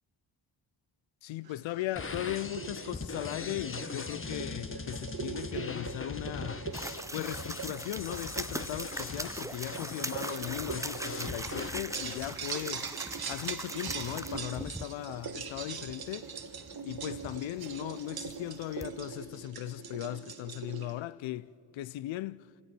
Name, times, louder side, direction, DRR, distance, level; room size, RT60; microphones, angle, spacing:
voice 1, 1.2-6.7 7.1-12.9 13.3-16.3 16.8-22.5, left 15 dB, 85° left, 0.5 m, -38 dB
sound 1, 1.4-21.0, right 6 dB, 55° right, 1.6 m, -42 dB
sound 2, 2.0-12.3, left 3 dB, 30° left, 1.3 m, -41 dB
sound 3, 6.7-19.1, right 1 dB, 5° right, 0.7 m, -41 dB
26.0 x 17.5 x 6.1 m
cardioid pair, 60°, 45 cm